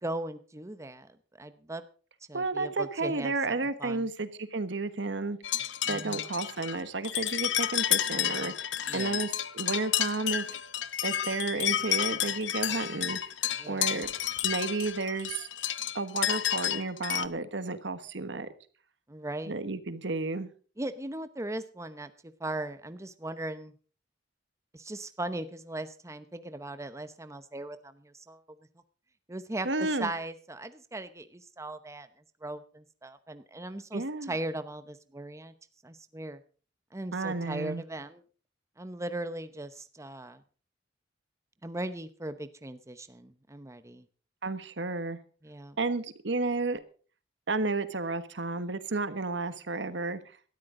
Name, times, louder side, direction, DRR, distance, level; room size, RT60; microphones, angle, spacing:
voice 1, 0.0-1.8 2.3-4.1 5.9-6.3 8.9-9.2 13.6-13.9 19.1-19.5 20.8-23.7 24.7-28.4 29.3-29.7 30.0-32.1 32.4-35.5 35.8-36.4 36.9-38.2 38.8-40.4 41.6-44.1 45.4-45.8, right 1 dB, 15° right, 11 dB, 0.9 m, -38 dB
voice 2, 2.3-5.4 5.9-10.6 11.0-13.2 13.7-14.1 14.4-15.5 15.9-18.5 19.5-20.5 29.6-30.1 33.9-34.3 37.1-37.8 44.4-45.2 45.8-46.8 47.5-50.2, right 3 dB, 75° right, 12 dB, 1.3 m, -32 dB
sound 1, 5.4-17.3, left 11 dB, 90° left, 0.9 m, -31 dB
18.0 x 13.0 x 3.8 m, 0.39 s
head